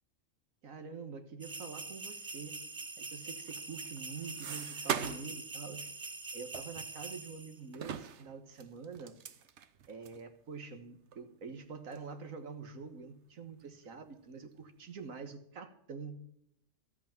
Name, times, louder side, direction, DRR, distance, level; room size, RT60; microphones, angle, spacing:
voice 1, 0.6-2.7 3.0-9.1 9.9-16.2, right 5 dB, 90° right, 8 dB, 1.8 m, -46 dB
sound 1, 1.4-7.6, right 3 dB, 25° right, 0.5 m, -44 dB
sound 2, 3.4-5.4 5.7-5.9 6.5-7.4 7.7-10.2 10.8-10.9 11.1-11.2 11.9-12.1 12.6-13.3 13.6-14.3, right 8 dB, 60° right, 1.1 m, -42 dB
13.0 x 8.6 x 7.2 m, 0.76 s
omnidirectional pair, 1.4 m